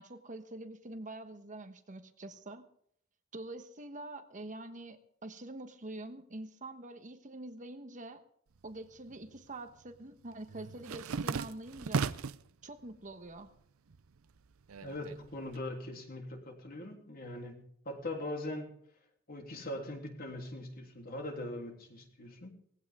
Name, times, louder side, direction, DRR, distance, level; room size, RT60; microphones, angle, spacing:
voice 1, 0.0-2.7 3.3-8.2 8.6-12.1 12.6-13.5, right 2 dB, 40° right, 1.2 m, -45 dB
sound 1, 8.6-9.4 9.7-12.5 12.9-13.6 13.9-15.6, right 5 dB, 80° right, 0.6 m, -37 dB
voice 2, 14.8-18.7 19.3-22.5, left 1 dB, 45° left, 3.2 m, -41 dB
19.0 x 16.0 x 3.7 m
head